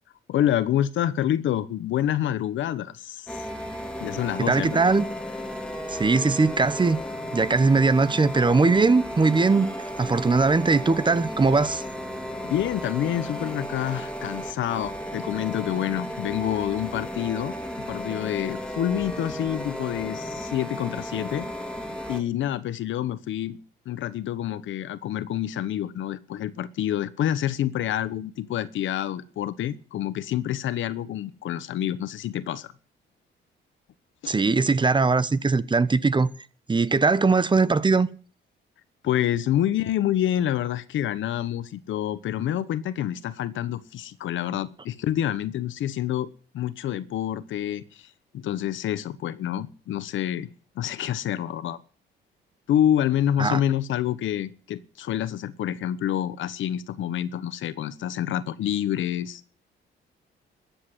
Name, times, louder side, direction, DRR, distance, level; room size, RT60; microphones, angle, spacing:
voice 1, 0.3-3.5 4.0-4.8 12.4-17.5 17.9-21.5 22.1-23.6 23.8-32.7 39.0-48.1 48.3-50.5 50.8-51.8 52.7-59.4, left 11 dB, 75° left, 1.1 m, -27 dB
sound 1, 3.3-22.2, equal, 5° left, 2.9 m, -34 dB
voice 2, 4.4-5.0 5.9-7.0 7.3-9.7 10.0-11.8 34.3-36.3 36.7-38.1 53.4-53.6, right 4 dB, 25° right, 0.9 m, -20 dB
14.0 x 8.6 x 9.9 m
cardioid pair, 90°, 20 cm